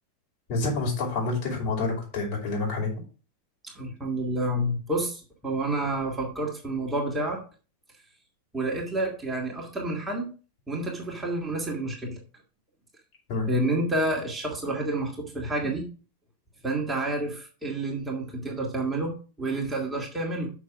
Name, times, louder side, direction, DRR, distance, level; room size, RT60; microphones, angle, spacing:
voice 1, 0.5-2.9 13.3-13.5, left 3 dB, 45° left, -1 dB, 5.3 m, -28 dB
voice 2, 3.6-7.4 8.5-10.3 10.7-12.2 13.5-15.9 16.6-20.5, right 1 dB, 10° right, -1 dB, 2.4 m, -29 dB
6.7 x 6.4 x 6.2 m, 0.37 s
figure-of-eight pair, 90°, 0 cm